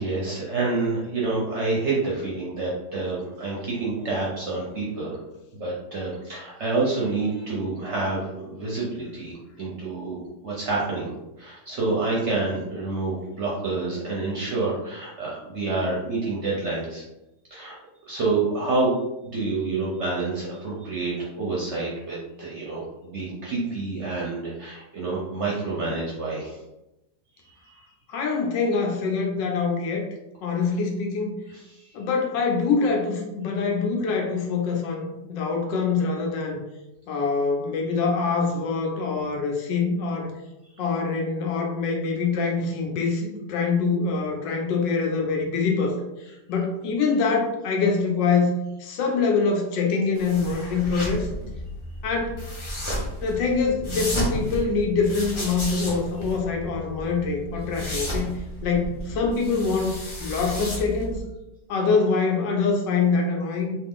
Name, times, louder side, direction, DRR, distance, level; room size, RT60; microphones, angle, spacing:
voice 1, 0.0-5.2 5.5-17.0 17.5-17.8 18.0-19.0 19.2-26.6 27.6-27.8 31.5-31.9, right 3 dB, 60° right, -4 dB, 0.8 m, -28 dB
voice 2, 28.1-30.0 30.4-31.3 31.9-36.6 37.1-40.3 40.8-48.5 48.8-51.3 52.0-52.4 53.2-58.3 58.6-61.2 61.7-63.8, left 4 dB, 85° left, 1 dB, 1.4 m, -24 dB
sound 1, 50.2-61.2, left 1 dB, 40° left, 0.4 m, -33 dB
3.3 x 2.4 x 3.6 m, 0.93 s
omnidirectional pair, 1.9 m